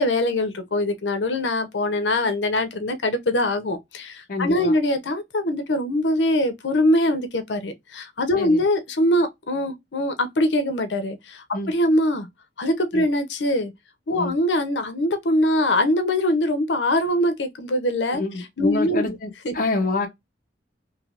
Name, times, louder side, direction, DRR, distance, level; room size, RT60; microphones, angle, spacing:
voice 1, 0.0-12.3 12.6-13.7 14.1-19.2 19.4-19.5, left 1 dB, 90° left, 0.7 m, -23 dB
voice 2, 4.3-4.7 8.4-8.6 11.5-11.7 12.9-13.0 14.2-14.3 18.2-20.1, left 3 dB, 50° left, 0.7 m, -27 dB
3.3 x 2.8 x 2.4 m
head